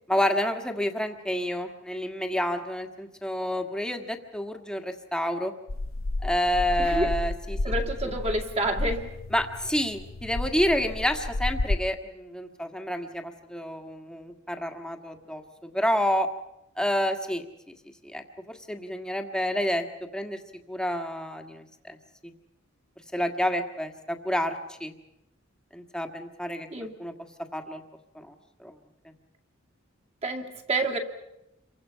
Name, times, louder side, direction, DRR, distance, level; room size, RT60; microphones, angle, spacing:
voice 1, 0.1-5.5 6.2-7.6 9.3-16.3 16.8-17.4 18.1-19.8 20.1-20.4 20.7-22.0 22.2-22.3 23.1-24.6 24.8-24.9 25.7-26.7 27.0-27.1 27.5-27.8 28.2-28.3 28.6-28.7, equal, 5° left, 5 dB, 1.6 m, -29 dB
sound 1, 5.7-11.8, left 2 dB, 75° left, 0.8 m, -31 dB
voice 2, 6.8-7.1 7.6-9.2 26.7-27.0 30.2-31.0, right 2 dB, 30° right, 3 dB, 2.4 m, -29 dB
28.0 x 24.0 x 5.7 m, 0.87 s
head